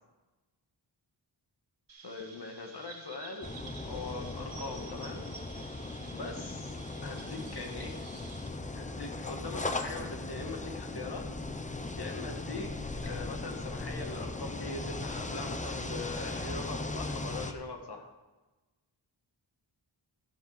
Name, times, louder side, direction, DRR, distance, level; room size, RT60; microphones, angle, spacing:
Chirp tweet, 1.9-8.5, right 5 dB, 65° right, 2.4 m, -51 dB
voice 1, 2.0-3.5 3.8-5.3 6.1-6.8 7.0-8.0 8.7-11.3 11.6-18.1, left 3 dB, 55° left, 3 dB, 1.7 m, -41 dB
sound 1, 3.4-17.5, left 2 dB, 15° left, 0.7 m, -38 dB
15.0 x 7.6 x 4.9 m, 1.2 s
wide cardioid pair, 115°, 48 cm